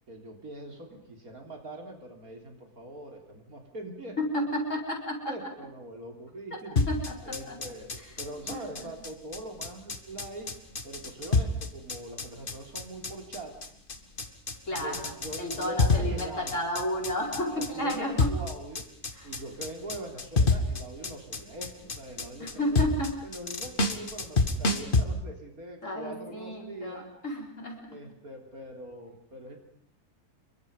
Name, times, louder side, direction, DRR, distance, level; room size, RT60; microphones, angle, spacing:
voice 1, 0.1-4.5 5.3-6.8 7.2-10.5 10.8-13.5 14.7-16.7 17.5-18.8 19.2-22.9 23.2-27.1 27.9-29.6, right 1 dB, 70° right, 3 dB, 3.9 m, -42 dB
voice 2, 4.2-5.4 6.8-7.6 7.9-8.1 8.5-8.8 14.7-18.3 19.1-19.3 22.4-23.1 25.8-27.8, left 1 dB, 50° left, 0 dB, 5.3 m, -32 dB
sound 1, 6.8-25.0, left 3 dB, 35° left, 1.7 m, -28 dB
27.5 x 23.0 x 5.4 m, 0.63 s
omnidirectional pair, 1.6 m